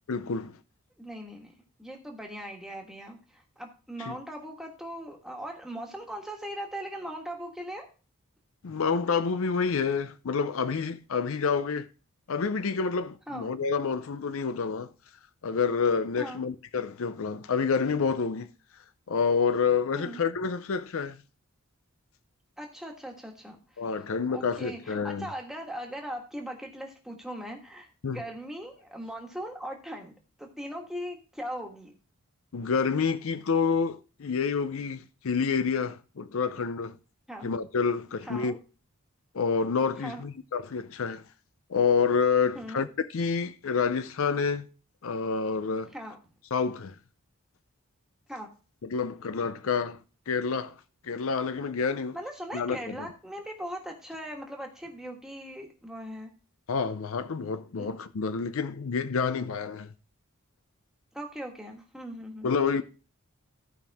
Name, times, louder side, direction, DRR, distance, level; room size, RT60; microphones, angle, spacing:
voice 1, 0.1-0.5 4.0-4.1 8.6-11.9 12.3-14.9 15.4-18.5 19.1-21.2 23.8-25.3 28.0-28.2 32.5-37.0 37.4-38.6 39.3-41.2 41.7-44.7 45.0-45.9 46.5-46.9 48.8-50.0 50.3-50.7 51.0-52.2 52.5-53.1 56.7-59.9 62.4-62.8, left 5 dB, 70° left, 0.5 m, -28 dB
voice 2, 1.0-1.5 1.8-7.9 13.3-13.5 16.2-16.4 19.9-20.2 22.6-23.6 24.3-30.1 30.4-31.9 37.3-37.5 38.3-38.6 40.0-40.3 42.5-42.9 45.9-46.2 48.3-48.5 52.1-56.3 57.8-57.9 61.1-62.8, equal, ahead, 1.5 m, -39 dB
14.5 x 5.3 x 3.5 m
head